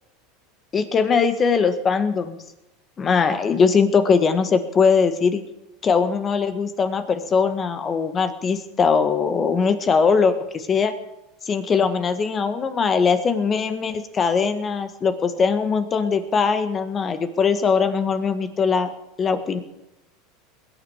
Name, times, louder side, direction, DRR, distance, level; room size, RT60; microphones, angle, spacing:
voice 1, 0.7-2.4 3.0-5.4 5.8-10.9 11.5-18.9 19.2-19.6, left 5 dB, 30° left, 10 dB, 1.7 m, -21 dB
21.0 x 9.0 x 5.0 m, 0.93 s
hypercardioid pair, 105°, 0 cm